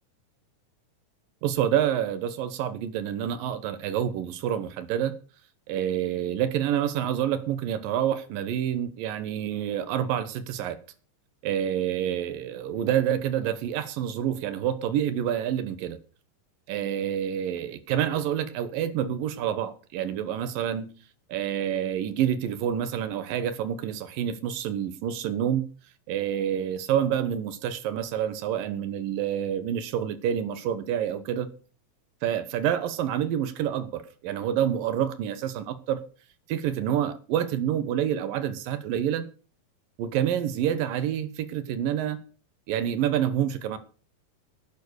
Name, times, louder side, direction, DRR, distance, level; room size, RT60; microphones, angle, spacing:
voice 1, 1.4-5.1 5.7-10.8 11.4-16.0 16.7-20.9 21.3-25.6 26.1-31.5 32.2-36.0 36.5-39.3 40.0-42.2 42.7-43.8, right 10 dB, 85° right, 2.9 m, -28 dB
12.0 x 9.2 x 6.3 m
omnidirectional pair, 3.9 m